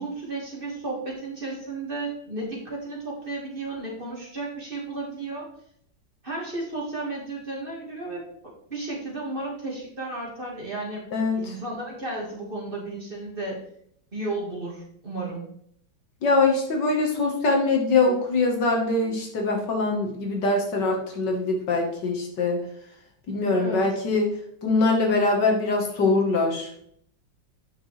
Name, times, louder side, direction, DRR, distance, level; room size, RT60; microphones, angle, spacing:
voice 1, 0.0-5.5 6.2-8.2 8.7-11.0 11.4-13.6 14.1-15.5 23.5-23.9, right 2 dB, 30° right, -3 dB, 1.7 m, -33 dB
voice 2, 11.1-11.6 16.2-22.6 23.3-24.3 24.6-26.7, left 3 dB, 65° left, 2 dB, 1.9 m, -23 dB
8.7 x 5.9 x 3.2 m, 0.68 s
omnidirectional pair, 2.1 m